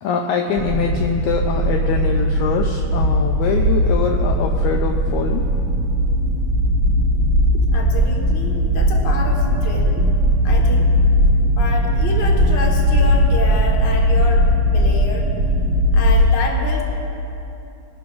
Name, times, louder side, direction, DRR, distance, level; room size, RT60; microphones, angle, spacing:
voice 1, 0.0-5.8 7.5-7.6 10.8-10.9, left 5 dB, 85° left, 3 dB, 1.7 m, -23 dB
sound 1, 0.6-16.3, equal, 45° right, 1.1 m, -18 dB
voice 2, 7.7-10.0 10.4-10.8 11.6-15.3 15.9-16.8, left 3 dB, 50° left, -1 dB, 1.4 m, -28 dB
21.5 x 11.5 x 2.5 m, 2.8 s
omnidirectional pair, 4.0 m